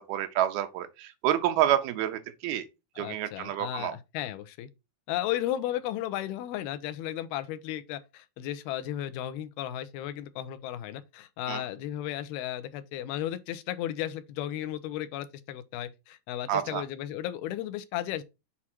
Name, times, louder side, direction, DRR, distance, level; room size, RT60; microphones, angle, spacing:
voice 1, 0.1-2.6 3.0-3.9 11.5-11.6 16.5-16.8, right 11 dB, 80° right, 2.7 m, -28 dB
voice 2, 3.0-4.7 5.1-18.2, left 12 dB, 90° left, 2.7 m, -34 dB
7.3 x 4.8 x 4.4 m
omnidirectional pair, 4.4 m